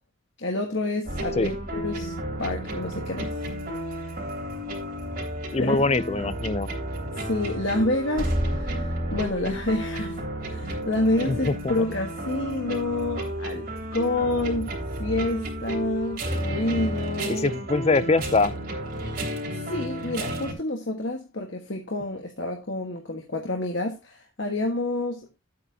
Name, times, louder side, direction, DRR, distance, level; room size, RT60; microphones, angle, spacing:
voice 1, 0.4-2.1 2.4-3.3 5.6-5.8 6.2-6.3 7.2-10.2 10.4-14.7 15.0-17.5 19.1-19.2 19.5-25.3, left 2 dB, 60° left, 1.5 m, -28 dB
sound 1, 1.1-20.5, right 1 dB, 45° right, 3.1 m, -32 dB
voice 2, 5.5-6.7 11.3-11.7 17.3-18.5, left 3 dB, 30° left, 0.5 m, -23 dB
11.5 x 8.5 x 2.8 m
head